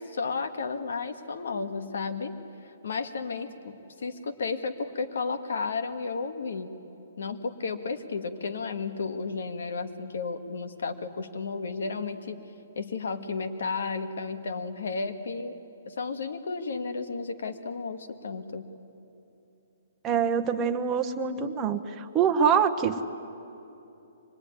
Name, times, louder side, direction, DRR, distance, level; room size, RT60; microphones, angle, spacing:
voice 1, 0.0-2.3 2.8-6.7 7.2-12.4 12.8-15.5 15.9-18.7, left 4 dB, 80° left, 7 dB, 1.9 m, -33 dB
voice 2, 20.0-23.1, right 7 dB, 15° right, 4 dB, 1.1 m, -25 dB
25.0 x 20.5 x 9.8 m, 2.9 s
hypercardioid pair, 160°, 0 cm